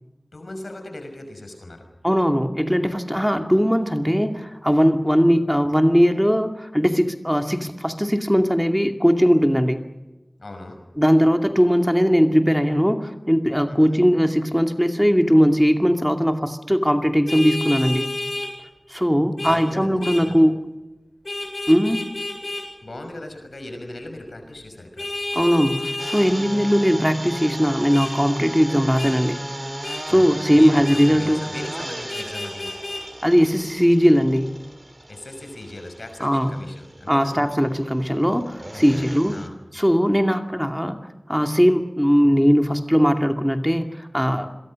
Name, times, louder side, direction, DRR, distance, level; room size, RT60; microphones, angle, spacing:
voice 1, 0.3-1.9 10.4-10.8 13.6-14.0 19.4-20.4 22.8-25.1 30.1-32.7 35.1-37.4 38.7-39.5, left 1 dB, 90° left, 5 dB, 5.9 m, -38 dB
voice 2, 2.0-9.8 11.0-18.1 18.9-20.5 21.7-22.0 25.3-29.4 30.1-31.4 33.2-34.6 36.2-36.6 37.1-39.4 39.7-44.5, equal, ahead, 5 dB, 2.4 m, -19 dB
Vehicle horn car horn honking, 17.3-18.5 19.4-19.6 20.0-20.2 21.2-22.6 25.0-26.3 27.9-28.1 29.0-29.1 29.8-30.0 30.8-31.1 32.1-33.0, left 2 dB, 60° left, 7.9 m, -30 dB
sound 1, 26.0-39.5, right 1 dB, 35° right, 3.2 m, -36 dB
28.0 x 22.5 x 6.5 m, 1.0 s
wide cardioid pair, 40°, 0 cm